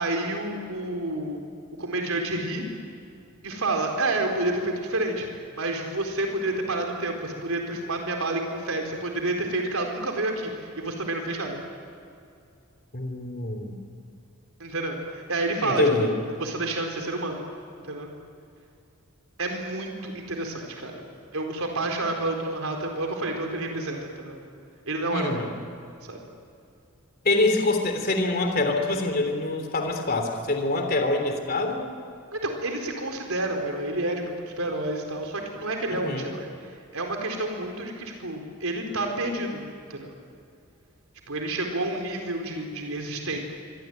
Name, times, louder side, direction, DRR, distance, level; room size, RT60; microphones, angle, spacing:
voice 1, 0.0-1.4 1.8-2.7 3.4-11.6 14.6-16.1 16.4-17.5 17.8-18.1 19.4-21.0 21.3-24.4 24.9-25.4 26.0-26.2 32.3-39.6 39.9-40.1 41.3-43.4, right 2 dB, 85° right, 3 dB, 4.2 m, -29 dB
voice 2, 12.9-13.8 15.6-16.1 25.1-25.5 27.2-31.9 35.9-36.3, left 2 dB, 45° left, 5 dB, 3.1 m, -25 dB
25.5 x 24.5 x 9.3 m, 2.4 s
head